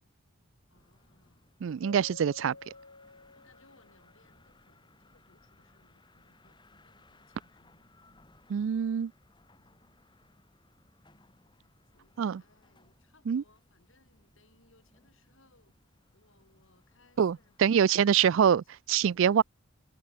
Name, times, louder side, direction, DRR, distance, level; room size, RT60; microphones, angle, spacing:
voice 1, 0.7-1.5 1.9-2.3 3.3-8.3 9.6-9.8 11.9-15.8 16.1-18.5, left 2 dB, 60° left, 7.9 m, -67 dB
sound 1, 0.7-18.5, left 2 dB, 20° left, 3.2 m, -64 dB
voice 2, 1.6-2.5 8.5-9.1 12.2-12.4 13.3-13.4 17.2-19.4, right 8 dB, 60° right, 0.3 m, -25 dB
Keyboard (musical), 1.8-4.3, left 3 dB, 75° left, 5.4 m, -50 dB
head